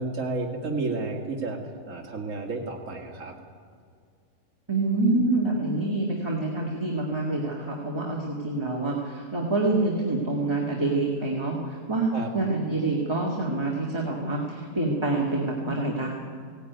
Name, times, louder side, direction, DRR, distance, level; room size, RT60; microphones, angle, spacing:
voice 1, 0.0-1.6 1.9-3.3 12.1-12.3, right 3 dB, 55° right, -1 dB, 2.4 m, -31 dB
voice 2, 4.7-16.1, right 2 dB, 15° right, -2 dB, 2.1 m, -26 dB
18.5 x 17.5 x 9.4 m, 2.1 s
omnidirectional pair, 1.6 m